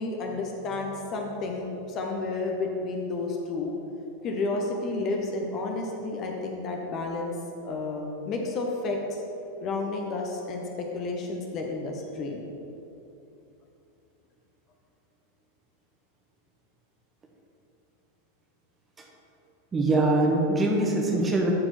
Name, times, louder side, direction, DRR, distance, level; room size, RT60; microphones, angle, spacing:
voice 1, 0.0-3.7 4.2-7.3 7.6-9.2 9.6-12.4, left 3 dB, 35° left, 1 dB, 0.8 m, -31 dB
voice 2, 19.7-21.5, right 2 dB, 20° right, 0 dB, 1.3 m, -23 dB
11.5 x 4.4 x 4.3 m, 2.9 s
figure-of-eight pair, 90°, 0 cm